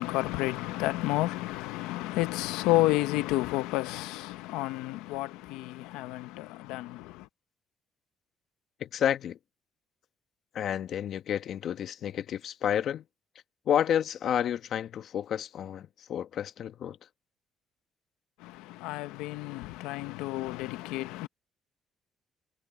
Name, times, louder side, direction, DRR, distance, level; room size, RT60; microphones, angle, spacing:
voice 1, 0.0-7.3 18.4-21.3, left 18 dB, 90° left, 1.0 m, -31 dB
voice 2, 8.8-9.4 10.5-13.0 13.7-17.0, left 9 dB, 65° left, 1.4 m, -30 dB
supercardioid pair, 75°, 0 cm